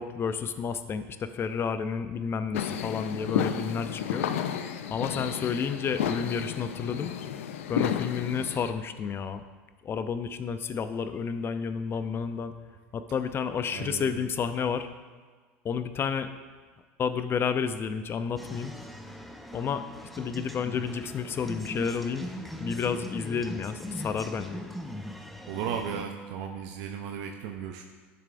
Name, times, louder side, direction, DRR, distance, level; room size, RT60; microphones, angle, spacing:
voice 1, 0.0-4.3 4.9-7.1 7.7-9.4 9.8-12.5 12.9-14.9 15.6-16.3 17.0-18.7 19.5-19.8 20.2-22.3 22.6-24.6, left 6 dB, 35° left, 11 dB, 0.5 m, -31 dB
sound 1, 2.5-8.7, left 9 dB, 80° left, 0.4 m, -32 dB
voice 2, 13.7-14.2 25.5-27.8, right 8 dB, 65° right, 4 dB, 0.6 m, -35 dB
sound 2, 18.4-26.0, equal, ahead, 0.7 m, -40 dB
10.5 x 6.8 x 2.6 m, 1.5 s
hypercardioid pair, 85°, 7 cm